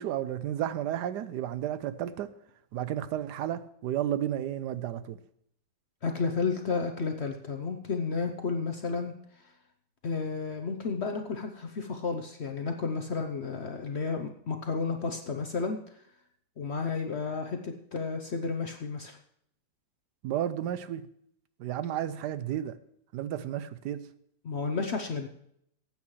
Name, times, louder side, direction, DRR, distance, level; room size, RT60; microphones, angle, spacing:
voice 1, 0.0-2.3 2.7-5.2 20.2-21.1 21.6-22.7 23.1-24.0, right 11 dB, 80° right, 1.2 m, -32 dB
voice 2, 6.0-9.1 10.0-15.8 16.6-19.2 22.1-22.2 24.4-25.3, left 4 dB, 55° left, 0.8 m, -32 dB
18.5 x 8.6 x 3.2 m
omnidirectional pair, 1.8 m